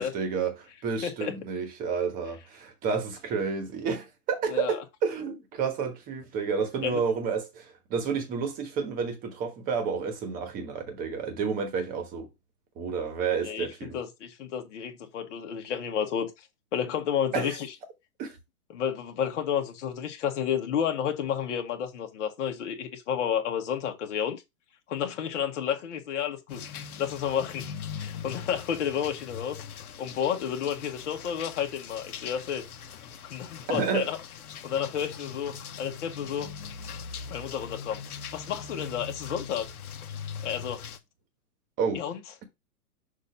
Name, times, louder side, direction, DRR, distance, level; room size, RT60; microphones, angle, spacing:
voice 1, 0.0-12.3 12.8-14.0 17.3-17.6 18.2-18.4 33.7-34.1 41.8-42.0, right 5 dB, 20° right, 1.2 m, -30 dB
voice 2, 1.0-1.3 4.5-4.8 6.8-7.0 13.4-13.7 13.9-16.5 16.7-17.7 18.7-24.4 24.9-29.6 30.0-32.6 33.3-34.2 34.6-36.5 37.3-38.0 38.3-39.7 40.4-40.8 41.9-42.2, left 8 dB, 50° left, 1.4 m, -31 dB
sound 1, 26.5-41.0, left 6 dB, 70° left, 1.0 m, -41 dB
6.3 x 2.7 x 5.5 m
hypercardioid pair, 155°, 45 cm